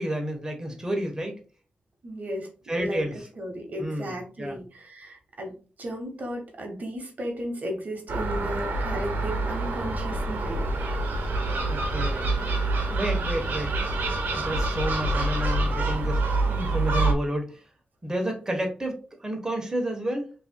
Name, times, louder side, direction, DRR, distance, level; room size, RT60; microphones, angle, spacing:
voice 1, 0.0-1.4 2.7-3.3 3.8-4.1 4.4-4.6 11.7-12.3 12.9-13.8 14.3-16.2 16.5-17.6 18.0-20.3, right 1 dB, 20° right, 2 dB, 1.1 m, -30 dB
voice 2, 2.0-2.5 2.8-10.7, equal, 60° right, 3 dB, 1.0 m, -35 dB
Gull seagull, 8.1-17.1, right 2 dB, 85° right, 0.8 m, -26 dB
5.2 x 2.8 x 2.2 m, 0.37 s
cardioid pair, 75°, 3 cm